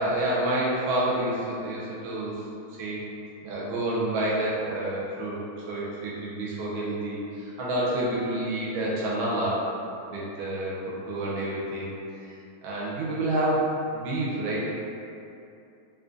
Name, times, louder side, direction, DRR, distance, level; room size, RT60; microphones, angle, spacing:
voice 1, 0.0-2.3 2.8-3.0 3.4-5.4 5.7-9.7 10.1-12.2 12.6-13.7 13.9-14.7, right 1 dB, 80° right, -6 dB, 1.5 m, -28 dB
3.8 x 2.9 x 2.4 m, 2.6 s
omnidirectional pair, 2.3 m